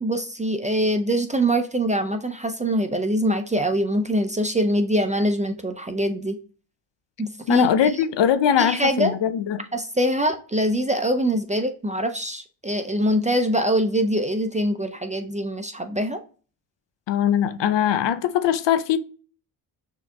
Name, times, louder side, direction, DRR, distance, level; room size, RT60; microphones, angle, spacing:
voice 1, 0.0-6.4 7.2-7.9 8.6-9.1 9.7-16.2, right 1 dB, 15° right, 0.4 m, -23 dB
voice 2, 7.5-9.7 17.1-19.0, left 9 dB, 60° left, 0.6 m, -21 dB
6.3 x 2.8 x 2.2 m
supercardioid pair, 50°, 49 cm